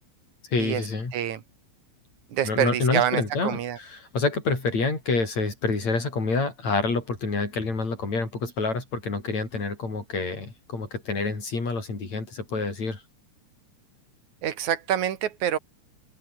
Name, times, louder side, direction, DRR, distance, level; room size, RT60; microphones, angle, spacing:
voice 1, 0.5-1.1 2.4-13.0, left 3 dB, 65° left, 7.4 m, -27 dB
voice 2, 2.3-3.8 14.4-15.6, right 10 dB, 80° right, 3.2 m, -26 dB
open air
omnidirectional pair, 3.4 m